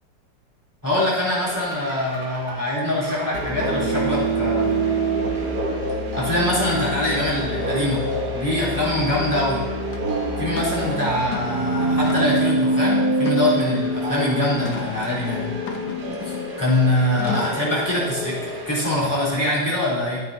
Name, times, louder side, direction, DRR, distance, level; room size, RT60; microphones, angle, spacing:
voice 1, 0.8-4.8 6.1-8.0 8.3-9.6 10.4-15.4 16.2-20.2, left 1 dB, 10° left, -7 dB, 3.8 m, -23 dB
sound 1, 1.4-19.5, right 1 dB, 65° right, 1.9 m, -26 dB
sound 2, 9.9-10.0 10.6-10.8 11.2-11.6 12.1-12.5 13.2-13.9 14.6-14.9 15.7-16.5 17.2-17.7, left 5 dB, 60° left, 1.2 m, -33 dB
14.0 x 9.5 x 2.8 m, 1.3 s
omnidirectional pair, 1.9 m